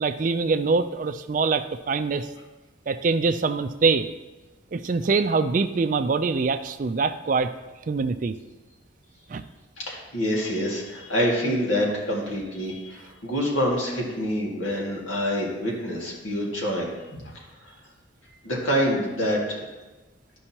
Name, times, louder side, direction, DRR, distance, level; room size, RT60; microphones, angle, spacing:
voice 1, 0.0-2.3 2.9-4.1 4.7-7.5 7.9-8.4 9.3-9.4, right 4 dB, 40° right, 10 dB, 0.3 m, -24 dB
voice 2, 9.8-17.2 17.6-17.7 18.2-19.7, equal, 85° left, -3 dB, 2.2 m, -26 dB
12.5 x 5.4 x 2.9 m, 1.1 s
head